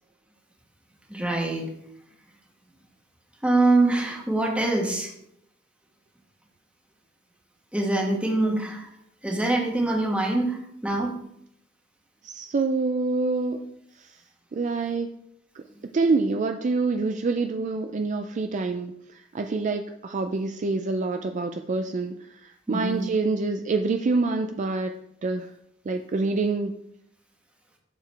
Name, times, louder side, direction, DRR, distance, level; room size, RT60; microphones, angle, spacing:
voice 1, 1.1-1.7 3.4-5.1 7.7-8.9 9.2-11.1 22.7-23.0, right 2 dB, 5° right, 0 dB, 1.3 m, -24 dB
voice 2, 12.2-13.6 14.0-14.2 14.5-15.1 15.5-15.6 15.9-24.9 25.2-25.5 25.9-26.7, right 3 dB, 35° right, 6 dB, 0.4 m, -26 dB
7.4 x 7.0 x 3.3 m, 0.74 s
head